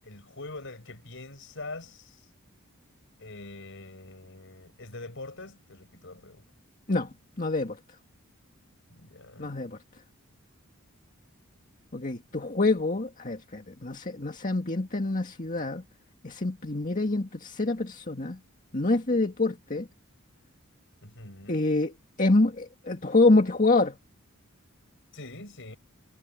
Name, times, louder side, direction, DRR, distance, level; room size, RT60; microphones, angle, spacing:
voice 1, 0.0-2.3 3.2-6.4 8.9-9.6 21.0-21.7 25.1-25.8, left 2 dB, 60° left, 7.5 m, -44 dB
voice 2, 7.4-7.8 9.4-9.8 11.9-15.8 16.2-18.4 18.7-19.9 21.5-21.9 22.2-23.9, left 2 dB, 40° left, 1.9 m, -26 dB
head